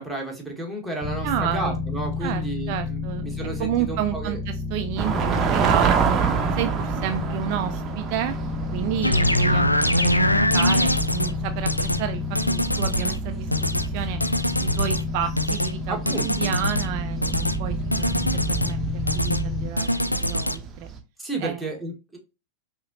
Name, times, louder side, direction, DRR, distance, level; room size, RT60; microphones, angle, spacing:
voice 1, 0.0-4.4 15.9-16.3 21.2-22.2, right 2 dB, ahead, -2 dB, 1.4 m, -32 dB
sound 1, 1.0-19.7, left 4 dB, 20° left, 0.6 m, -31 dB
voice 2, 1.2-1.8 2.2-2.4 2.7-3.3 3.6-6.2 6.6-8.3 8.7-12.2 12.5-13.7 13.9-14.2 14.6-20.9 21.4-21.7, right 10 dB, 45° right, 8 dB, 0.4 m, -30 dB
sound 2, 5.0-21.0, right 6 dB, 25° right, 0.8 m, -29 dB
sound 3, 9.0-11.3 11.7-12.0 12.3-13.2 13.5-13.9 14.2-15.0 15.4-15.7 16.1-16.9 17.2-17.6 17.9-18.7 19.1-19.4 19.8-20.6, left 1 dB, 85° left, 0.3 m, -23 dB
5.7 x 2.9 x 2.6 m, 0.28 s
figure-of-eight pair, 90°, 0 cm